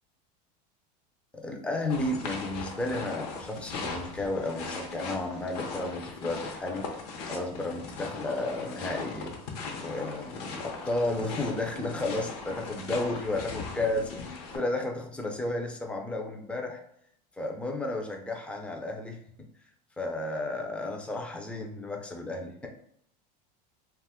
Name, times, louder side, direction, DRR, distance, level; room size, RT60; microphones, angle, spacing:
voice 1, 1.3-6.9 7.3-9.4 9.8-16.8 17.4-19.5 20.0-22.7, left 2 dB, 5° left, 2 dB, 0.4 m, -33 dB
sound 1, 1.9-14.6, left 4 dB, 75° left, 0.8 m, -39 dB
2.4 x 2.2 x 3.4 m, 0.71 s
supercardioid pair, 140°, 20 cm